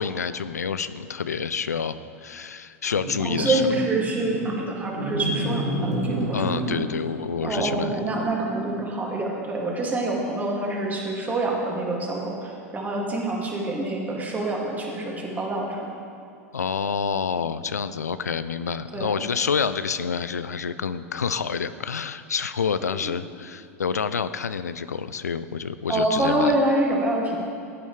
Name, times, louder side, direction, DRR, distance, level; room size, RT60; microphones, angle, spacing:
voice 1, 0.0-3.7 6.3-8.0 16.5-26.5, left 6 dB, 85° left, 13 dB, 0.4 m, -28 dB
sound 1, 2.9-4.4 4.9-7.0 7.4-8.8, right 1 dB, 80° right, 2.4 m, -30 dB
voice 2, 3.2-6.4 7.4-15.8 18.9-19.1 25.9-27.4, right 2 dB, 20° right, -2 dB, 2.4 m, -26 dB
16.0 x 9.2 x 3.3 m, 2.5 s
hypercardioid pair, 90°, 8 cm